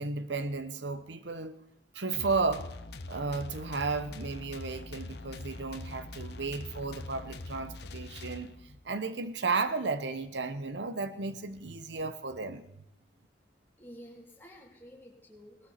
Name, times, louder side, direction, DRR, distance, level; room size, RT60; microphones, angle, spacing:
voice 1, 0.0-1.6 1.9-2.7 3.1-12.6, right 4 dB, 80° right, 0.9 m, -34 dB
sound 1, 2.1-8.8, left 2 dB, 65° left, 0.9 m, -43 dB
voice 2, 13.8-15.7, equal, 10° left, 3.1 m, -51 dB
19.0 x 13.5 x 4.3 m
head